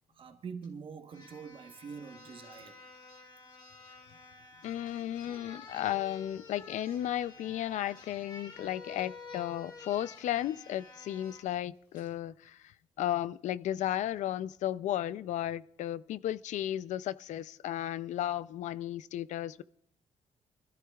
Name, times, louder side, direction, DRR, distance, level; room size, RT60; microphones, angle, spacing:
voice 1, 0.1-2.8, right 6 dB, 45° right, 1.1 m, -45 dB
sound 1, 0.6-0.7 1.1-11.5 11.9-12.1, left 4 dB, 40° left, 2.0 m, -51 dB
voice 2, 4.6-12.6 13.0-19.6, left 12 dB, 90° left, 0.4 m, -34 dB
24.5 x 14.0 x 2.4 m
cardioid pair, 150°, 12 cm